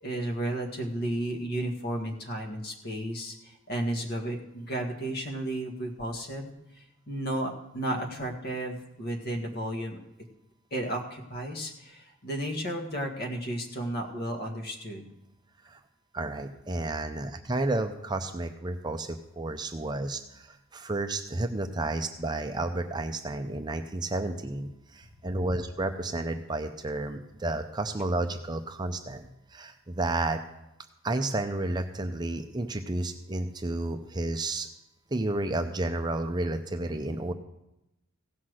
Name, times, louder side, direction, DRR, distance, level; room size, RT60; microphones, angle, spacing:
voice 1, 0.0-6.5 7.1-10.0 10.7-15.1, right 1 dB, 45° left, 3 dB, 1.6 m, -33 dB
voice 2, 16.1-30.4 31.0-34.7 35.1-37.3, right 2 dB, 20° right, 6 dB, 0.5 m, -31 dB
16.0 x 5.8 x 6.3 m, 0.88 s
head